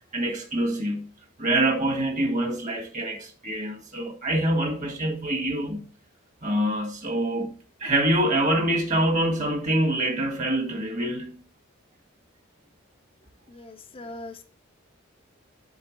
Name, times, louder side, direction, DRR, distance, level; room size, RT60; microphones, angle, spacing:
voice 1, 0.1-1.1 1.4-5.8 6.4-7.5 7.8-11.4, right 1 dB, 35° right, 1.5 m, -25 dB
voice 2, 13.5-14.4, left 2 dB, 25° left, 0.5 m, -41 dB
8.0 x 3.8 x 3.8 m
head